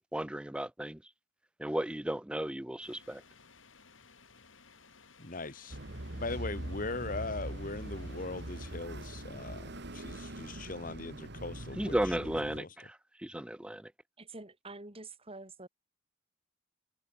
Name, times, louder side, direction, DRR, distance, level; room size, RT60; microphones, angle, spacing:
voice 1, 0.1-1.0 1.6-3.2 11.8-12.7 13.2-13.8, right 1 dB, 5° right, 0.5 m, -34 dB
sound 1, 2.8-8.8, left 5 dB, 75° left, 4.2 m, -59 dB
voice 2, 5.2-5.8 6.1-12.7, left 3 dB, 45° left, 2.3 m, -40 dB
sound 2, 5.7-12.6, right 1 dB, 60° right, 2.8 m, -42 dB
voice 3, 14.2-15.7, right 2 dB, 30° right, 4.0 m, -47 dB
head